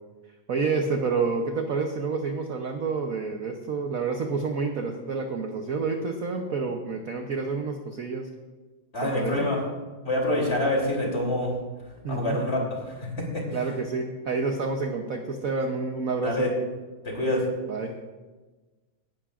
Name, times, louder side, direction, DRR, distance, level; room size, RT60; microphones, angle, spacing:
voice 1, 0.5-8.3 9.0-9.5 12.0-12.4 13.5-16.5 17.7-17.9, right 4 dB, 55° right, 3 dB, 1.0 m, -29 dB
voice 2, 8.9-9.6 10.0-11.5 12.1-13.3 16.2-16.5 17.0-17.4, left 1 dB, 30° left, -2 dB, 3.3 m, -26 dB
18.0 x 11.5 x 2.5 m, 1.3 s
omnidirectional pair, 2.4 m